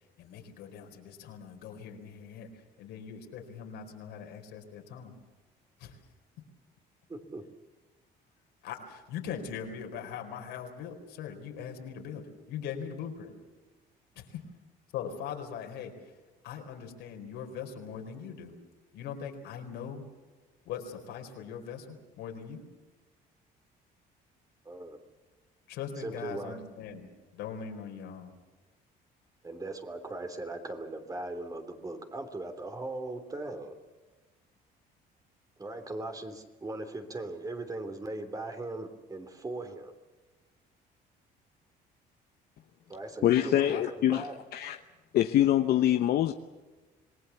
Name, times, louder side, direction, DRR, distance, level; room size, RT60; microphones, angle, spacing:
voice 1, 0.2-2.5 2.8-5.1 5.8-6.0 8.6-13.3 14.2-14.4 14.9-15.9 16.4-18.5 18.9-20.0 20.7-22.6 25.7-28.3, left 7 dB, 85° left, 4 dB, 4.3 m, -41 dB
voice 2, 7.1-7.5 24.6-25.0 26.0-26.6 29.4-33.7 35.6-39.9 42.9-44.3, right 2 dB, 20° right, 7 dB, 3.2 m, -39 dB
voice 3, 43.2-44.2 44.5-44.8 45.1-46.3, left 12 dB, 65° left, 7 dB, 1.0 m, -24 dB
26.5 x 19.5 x 7.1 m, 1.3 s
cardioid pair, 110°, 17 cm